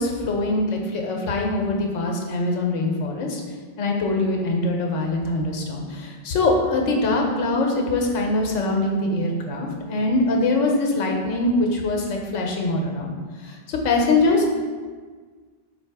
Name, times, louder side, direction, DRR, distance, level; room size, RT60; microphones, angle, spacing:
voice 1, 0.0-3.4 3.8-13.1 13.4-14.5, left 2 dB, 80° left, 1 dB, 1.0 m, -23 dB
4.1 x 2.7 x 4.5 m, 1.5 s
omnidirectional pair, 1.3 m